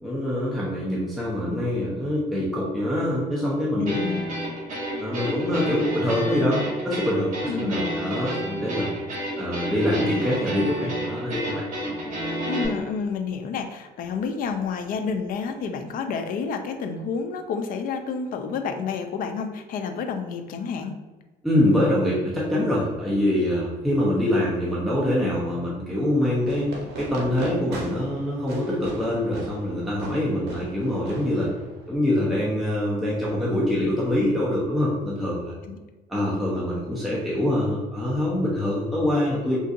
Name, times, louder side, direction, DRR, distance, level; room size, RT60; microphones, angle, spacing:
voice 1, 0.0-4.0 5.0-8.9 9.4-11.6 21.4-31.5 31.9-35.5 36.1-39.6, left 1 dB, ahead, -7 dB, 0.6 m, -24 dB
voice 2, 3.8-4.3 7.5-7.8 12.5-21.0 35.7-35.8, left 5 dB, 55° left, 6 dB, 0.4 m, -29 dB
sound 1, 3.9-12.7, right 1 dB, 50° right, 1.2 m, -30 dB
Fireworks, 26.4-32.0, right 2 dB, 75° right, 0.7 m, -38 dB
3.7 x 2.5 x 2.5 m, 1.2 s
cardioid pair, 110°, 17 cm